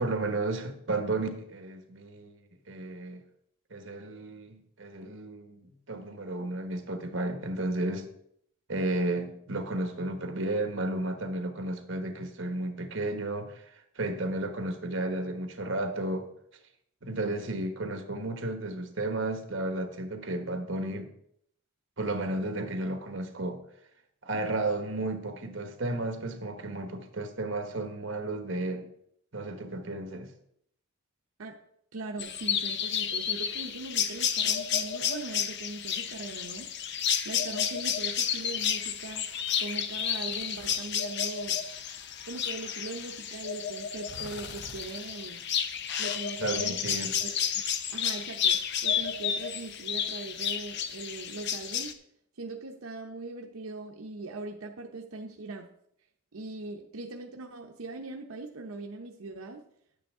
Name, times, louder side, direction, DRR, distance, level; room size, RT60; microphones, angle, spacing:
voice 1, 0.0-2.3 2.7-3.2 3.7-5.6 5.9-8.1 8.7-16.3 17.0-21.1 22.0-23.6 24.2-28.9 29.3-30.3 46.4-47.1, right 2 dB, 60° right, 1.3 m, -33 dB
voice 2, 31.9-37.0 37.2-39.2 39.6-41.6 42.2-45.4 46.0-46.9 47.2-47.3 47.9-51.9 52.4-55.7 56.3-59.6, right 3 dB, 85° right, 0.7 m, -40 dB
sound 1, 32.2-51.9, left 8 dB, 55° left, 0.6 m, -31 dB
10.5 x 8.6 x 3.7 m
head